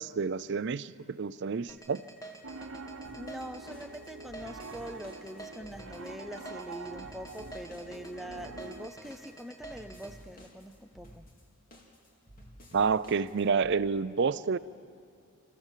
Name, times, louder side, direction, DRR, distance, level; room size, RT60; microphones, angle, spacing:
voice 1, 0.0-2.0 12.7-14.6, right 5 dB, 50° right, 0.5 m, -29 dB
sound 1, 1.7-10.1, right 2 dB, 15° left, 1.6 m, -48 dB
Piano, 2.4-8.9, right 3 dB, 65° right, 0.9 m, -46 dB
sound 2, 3.0-13.7, equal, 40° left, 2.4 m, -54 dB
voice 2, 3.1-11.3, equal, ahead, 0.5 m, -43 dB
27.5 x 14.5 x 7.4 m
head